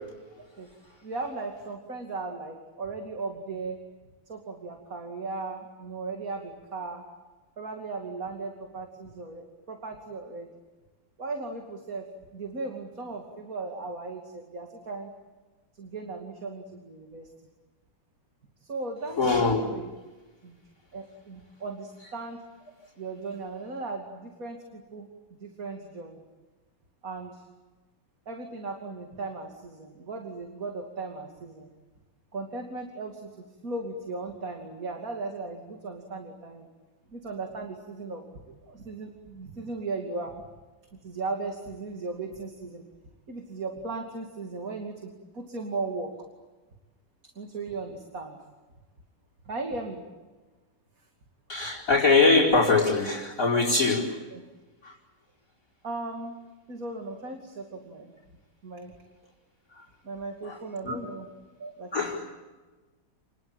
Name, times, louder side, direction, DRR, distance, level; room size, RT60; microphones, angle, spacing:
voice 1, 1.0-3.8 4.3-7.0 7.6-10.5 11.2-15.1 15.8-17.3 18.6-19.9 20.4-20.6 20.9-22.4 23.0-25.1 25.4-26.2 27.0-27.4 28.3-31.7 32.3-36.7 37.1-40.3 40.9-42.9 43.3-46.1 47.4-48.4 49.4-50.0 54.3-54.4 55.8-56.4 56.7-58.1 58.6-58.9 60.0-61.3 61.6-62.2, right 3 dB, 45° right, 3 dB, 3.1 m, -37 dB
voice 2, 19.2-19.6 51.5-54.1 54.8-54.9 59.7-59.8 60.4-60.6 60.8-61.1 61.9-62.2, left 3 dB, 45° left, 0 dB, 5.2 m, -22 dB
30.0 x 21.0 x 9.0 m, 1.3 s
omnidirectional pair, 2.0 m